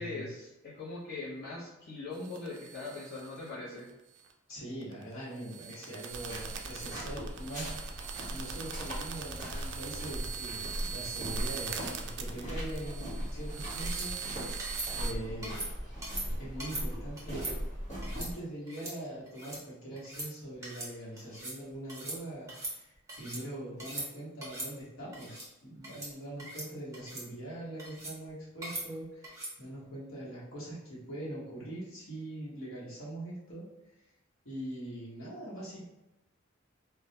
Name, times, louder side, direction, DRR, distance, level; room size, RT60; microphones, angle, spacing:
voice 1, 0.0-3.9, left 3 dB, 55° left, -8 dB, 0.7 m, -41 dB
sound 1, 2.1-3.5 3.8-3.9 4.2-4.5 4.8-15.1, right 7 dB, 60° right, 0.3 m, -42 dB
voice 2, 4.5-7.7 8.3-14.6 14.9-15.6 16.3-17.4 18.1-33.7 34.4-35.9, right 1 dB, 90° left, -7 dB, 1.0 m, -42 dB
sound 2, 6.1-18.3, equal, 35° left, 1.2 m, -39 dB
sound 3, 13.8-14.1 14.6-14.9 15.4-15.7 16.0-16.3 16.6-16.9 17.2-17.5 18.0-18.3 18.7-18.9 19.3-19.6 20.0-20.3 20.6-20.9 21.2-21.6 21.9-22.2 22.5-23.4 23.8-24.1 24.4-24.7 25.1-25.5 25.8-26.1 26.4-26.7 26.9-27.2 27.8-28.2 28.6-28.8 29.2-29.5, right 1 dB, 15° right, 0.8 m, -40 dB
2.2 x 2.1 x 2.7 m, 0.94 s
head